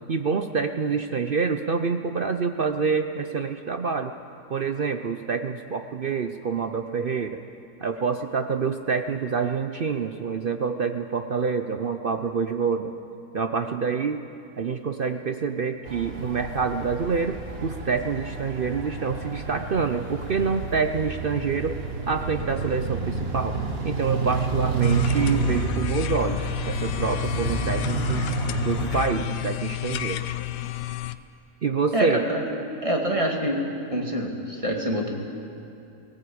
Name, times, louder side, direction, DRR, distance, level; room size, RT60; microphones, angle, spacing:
voice 1, 0.1-4.1 4.5-7.4 7.8-12.9 13.3-14.2 14.6-21.8 22.1-23.6 23.8-28.2 28.6-30.2 31.6-32.2, right 5 dB, 65° right, 7 dB, 0.5 m, -27 dB
sound 1, 15.8-29.1, right 4 dB, 40° right, 1.6 m, -29 dB
sound 2, 24.8-31.2, left 15 dB, 80° left, 1.2 m, -31 dB
voice 2, 31.9-32.6 32.8-33.6 33.9-35.1, equal, 20° right, 0 dB, 2.2 m, -26 dB
18.0 x 17.0 x 8.6 m, 2.6 s
omnidirectional pair, 1.8 m